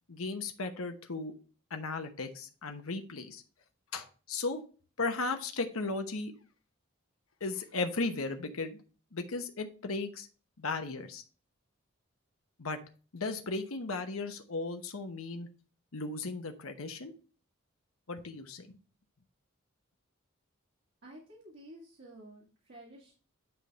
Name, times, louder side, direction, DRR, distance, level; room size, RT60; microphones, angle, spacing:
voice 1, 0.1-1.3 1.7-3.4 3.9-4.6 5.0-6.3 7.4-8.8 9.1-10.3 10.6-11.2 12.6-12.8 13.1-15.5 15.9-17.1 18.1-18.7, left 3 dB, 85° left, 6 dB, 1.0 m, -36 dB
voice 2, 21.0-23.1, right 1 dB, 55° right, -5 dB, 2.0 m, -52 dB
10.0 x 3.5 x 4.1 m, 0.37 s
head